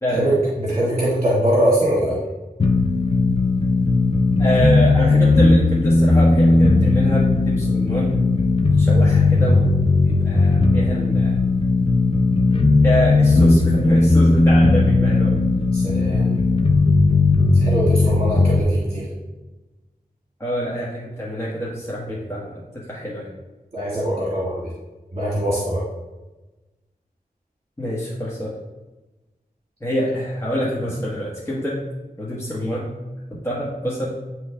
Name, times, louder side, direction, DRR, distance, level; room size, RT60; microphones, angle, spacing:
voice 1, 0.0-0.5 4.4-8.1 8.6-9.8 10.0-11.4 12.8-15.4 20.4-23.3 27.8-28.5 29.8-31.8 32.2-32.9 33.4-34.2, equal, 15° left, -6 dB, 1.2 m, -26 dB
voice 2, 0.6-2.1 15.7-16.3 17.5-19.1 23.7-24.7 25.1-25.8, right 1 dB, 40° right, -6 dB, 1.7 m, -22 dB
sound 1, 2.6-18.6, left 3 dB, 35° left, 0.6 m, -17 dB
9.4 x 3.2 x 3.4 m, 1.1 s
wide cardioid pair, 50°, 16 cm